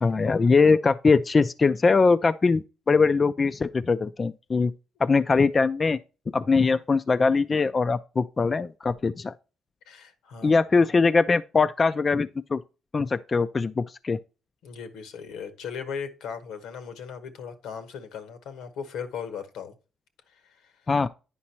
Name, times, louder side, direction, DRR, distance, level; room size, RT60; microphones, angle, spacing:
voice 1, 0.0-4.7 5.0-6.0 6.3-9.3 10.4-12.6 12.9-14.2 20.9-21.1, left 4 dB, 35° left, 0.3 m, -22 dB
voice 2, 9.9-10.5 14.6-19.7 20.3-20.9, left 6 dB, 90° left, 1.1 m, -38 dB
9.7 x 5.2 x 2.8 m
cardioid pair, 90°, 0 cm